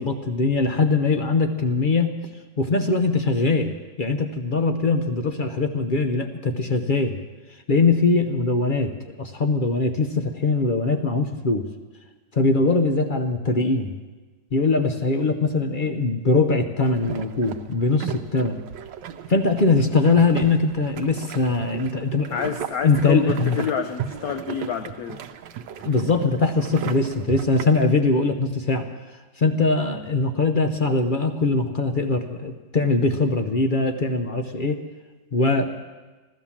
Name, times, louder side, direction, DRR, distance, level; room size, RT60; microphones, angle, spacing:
voice 1, 0.0-2.2 2.6-3.7 4.0-7.2 7.7-11.7 12.3-13.9 14.5-18.6 19.3-22.4 22.8-23.6 25.8-28.9 29.4-34.8 35.3-35.7, left 3 dB, 45° left, 6 dB, 0.6 m, -21 dB
sound 1, 16.8-27.9, right 8 dB, 85° right, 1.4 m, -35 dB
voice 2, 22.3-25.2, left 8 dB, 65° left, 7 dB, 1.1 m, -28 dB
15.0 x 13.0 x 7.2 m, 1.3 s
omnidirectional pair, 1.9 m